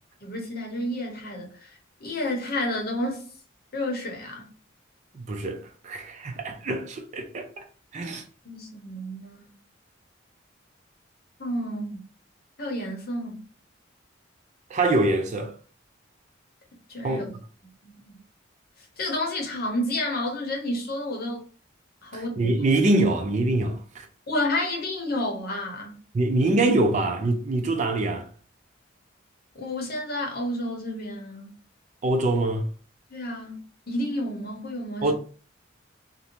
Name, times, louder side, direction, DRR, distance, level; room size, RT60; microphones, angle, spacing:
voice 1, 0.2-3.2 3.7-4.4 7.9-8.2 8.4-9.6 11.4-12.0 12.6-13.4 16.9-17.3 17.8-18.2 19.0-21.4 22.0-22.5 24.3-26.0 29.5-31.5 33.1-33.6 33.9-35.1, left 1 dB, 50° left, 0.8 m, -30 dB
voice 2, 5.1-7.6 7.9-8.2 14.7-15.5 17.0-17.3 22.1-24.1 26.1-28.3 32.0-32.7 35.0-35.1, right 2 dB, 40° right, 0.4 m, -24 dB
2.5 x 2.1 x 2.9 m
head